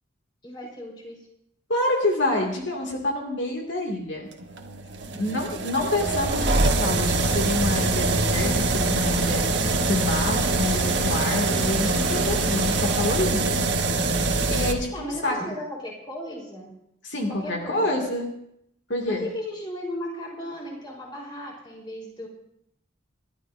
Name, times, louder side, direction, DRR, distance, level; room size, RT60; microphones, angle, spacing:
voice 1, 0.4-1.3 14.7-16.7 17.3-18.0 19.1-22.3, left 1 dB, 25° left, -3 dB, 4.0 m, -36 dB
voice 2, 1.7-4.3 5.1-13.6 14.5-15.4 17.0-18.3 18.9-19.3, left 1 dB, 70° left, 0 dB, 2.3 m, -27 dB
sound 1, 4.4-14.7, right 3 dB, 60° right, 1.3 m, -24 dB
sound 2, 6.0-13.3, equal, 5° left, 1.6 m, -33 dB
28.5 x 12.5 x 2.7 m, 0.76 s
head